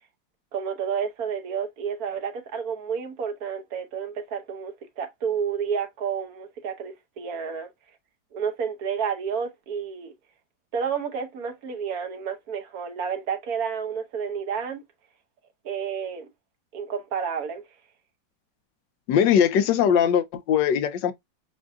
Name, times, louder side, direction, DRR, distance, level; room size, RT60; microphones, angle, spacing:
voice 1, 0.5-7.7 8.3-10.1 10.7-14.8 15.6-16.3 16.7-17.6, right 7 dB, 60° right, 1.2 m, -30 dB
voice 2, 19.1-21.1, left 8 dB, 80° left, 1.3 m, -20 dB
7.4 x 2.6 x 2.3 m
omnidirectional pair, 1.9 m